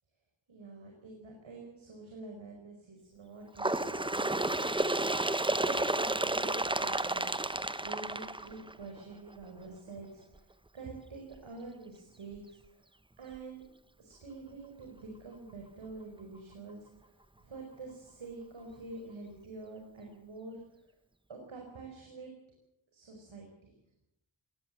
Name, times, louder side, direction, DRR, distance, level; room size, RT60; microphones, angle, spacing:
voice 1, 0.5-4.9 5.2-7.5 7.8-12.8 13.2-13.6 14.0-20.6 21.3-22.3 22.9-23.5, right 3 dB, 75° right, 1 dB, 5.2 m, -47 dB
Bird, 3.6-9.0 9.9-10.0 10.4-10.5 11.4-11.5 12.4-12.5 13.3-13.4, right 2 dB, 10° right, 0.8 m, -31 dB
20.0 x 19.0 x 7.8 m, 0.80 s
wide cardioid pair, 125°, 47 cm